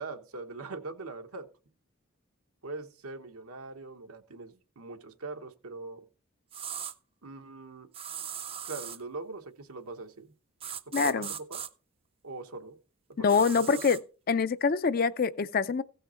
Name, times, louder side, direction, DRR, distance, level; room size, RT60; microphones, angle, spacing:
voice 1, 0.0-1.5 2.6-6.0 7.2-7.9 8.6-10.3 10.9-11.6 12.2-12.8 13.1-13.8, right 3 dB, 90° right, 1.2 m, -42 dB
sound 1, 6.5-6.9 7.9-9.0 10.6-11.7 13.3-14.0, right 8 dB, 25° right, 0.4 m, -38 dB
voice 2, 10.9-11.3 13.2-14.0 14.3-15.8, left 5 dB, 40° left, 0.4 m, -25 dB
16.0 x 5.6 x 4.4 m
head